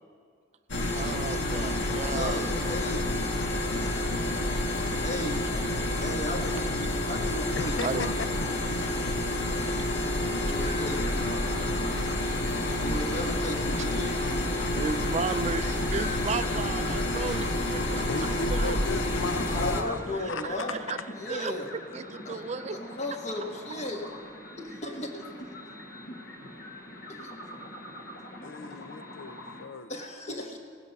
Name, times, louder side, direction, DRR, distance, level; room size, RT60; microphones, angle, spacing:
sound 1, 0.7-19.8, left 1 dB, 75° left, 1.3 m, -29 dB
voice 1, 0.9-2.4 7.8-8.1 14.7-18.8 20.4-21.0 21.3-22.8, right 4 dB, 35° right, 11 dB, 0.4 m, -34 dB
voice 2, 2.1-3.1 5.0-5.4 6.0-6.7 7.1-8.1 10.4-11.5 12.8-14.2 19.5-20.8 21.2-21.7 22.3-24.0 24.6-25.2 27.1-27.3 29.9-30.6, left 1 dB, 35° left, 3 dB, 1.2 m, -36 dB
voice 3, 7.6-8.1 18.1-20.0 20.3-20.4 28.4-29.9, left 4 dB, 90° left, 12 dB, 0.6 m, -35 dB
sound 2, 10.5-29.6, left 1 dB, 55° left, 1.4 m, -43 dB
18.0 x 7.4 x 5.4 m, 2.2 s
head